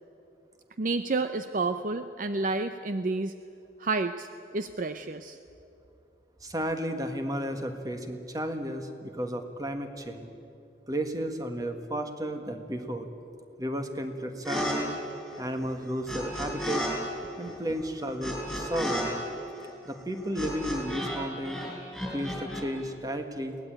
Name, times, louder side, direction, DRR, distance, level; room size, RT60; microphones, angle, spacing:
voice 1, 0.8-3.3 3.8-5.4, right 3 dB, 50° right, 9 dB, 0.6 m, -30 dB
voice 2, 6.4-10.3 10.9-13.1 13.6-14.9 15.4-16.9 17.4-19.1 19.8-21.6 22.1-23.5, equal, 20° right, 6 dB, 1.7 m, -33 dB
sound 1, 14.4-14.8 15.0-16.9 17.2-21.2 21.4-22.6, equal, ahead, 6.2 m, -33 dB
22.5 x 18.5 x 9.0 m, 2.6 s
head